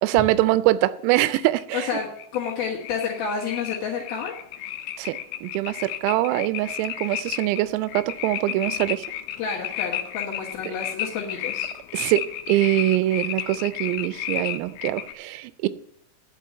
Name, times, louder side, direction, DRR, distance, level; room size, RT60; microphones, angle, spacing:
voice 1, 0.0-1.9 5.0-9.1 10.7-10.8 11.9-15.7, right 16 dB, 85° right, 3.2 m, -23 dB
sound 1, 1.2-15.1, left 11 dB, 90° left, 2.5 m, -33 dB
voice 2, 1.7-4.4 8.4-8.8 9.4-11.7, left 6 dB, 70° left, 2.5 m, -30 dB
10.0 x 5.4 x 8.4 m
omnidirectional pair, 6.0 m